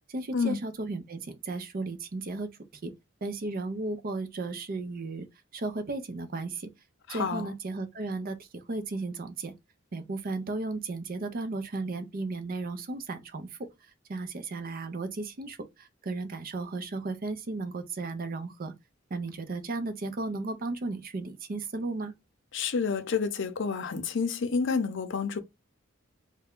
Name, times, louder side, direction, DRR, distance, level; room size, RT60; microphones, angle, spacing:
voice 1, 0.1-2.9 3.2-5.3 5.5-6.7 7.1-9.5 9.9-13.7 14.1-18.7 19.1-22.1, right 3 dB, 45° right, 0.5 m, -35 dB
voice 2, 7.1-7.5 22.5-25.4, left 5 dB, 65° left, 0.6 m, -29 dB
3.3 x 2.2 x 3.6 m
head